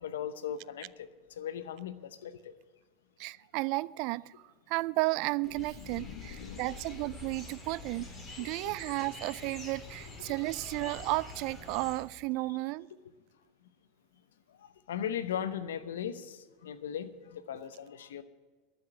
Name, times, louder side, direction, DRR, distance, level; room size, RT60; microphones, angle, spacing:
voice 1, 0.0-1.1 1.4-2.3 5.8-6.7 8.7-8.8 14.9-18.2, left 9 dB, 80° left, 0.8 m, -38 dB
voice 2, 3.2-4.3 4.7-12.9, right 22 dB, 60° right, 0.4 m, -33 dB
sound 1, 5.4-12.0, left 3 dB, 25° left, 4.6 m, -46 dB
11.5 x 7.8 x 9.6 m
hypercardioid pair, 90°, 0 cm